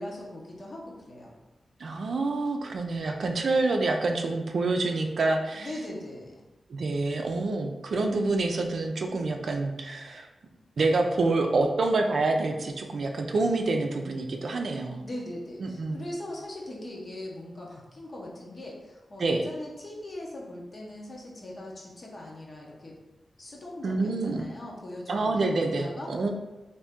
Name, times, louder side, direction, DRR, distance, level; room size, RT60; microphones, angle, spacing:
voice 1, 0.0-1.3 5.5-6.4 14.8-23.0 23.4-26.1, left 1 dB, 50° left, -3 dB, 0.8 m, -40 dB
voice 2, 1.8-5.7 6.7-10.3 10.8-15.0 15.6-16.1 19.2-19.4 23.8-24.5 25.1-26.3, right 3 dB, 70° right, 3 dB, 0.4 m, -27 dB
2.7 x 2.7 x 3.5 m, 1.1 s
cardioid pair, 65°, 0 cm